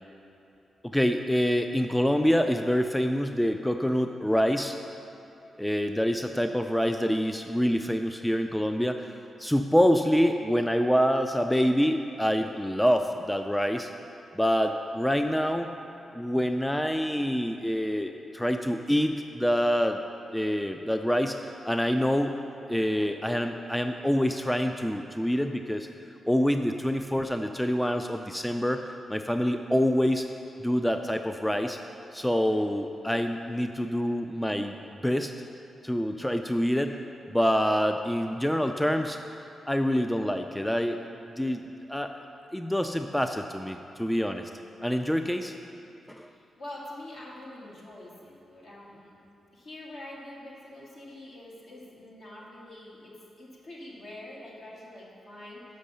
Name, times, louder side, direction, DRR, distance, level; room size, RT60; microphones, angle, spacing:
voice 1, 0.8-4.9 5.6-13.9 14.3-15.7 16.1-20.0 20.3-22.4 22.7-25.9 26.3-30.3 30.6-31.8 32.1-34.8 35.0-35.3 35.8-37.0 37.3-39.2 39.7-41.6 41.9-42.1 42.5-44.5 44.8-45.5 46.1-46.3, equal, 5° left, 6 dB, 0.3 m, -26 dB
voice 2, 46.2-49.2 49.5-55.6, left 1 dB, 65° left, -5 dB, 2.0 m, -45 dB
6.4 x 5.3 x 6.9 m, 2.8 s
cardioid pair, 75°, 0 cm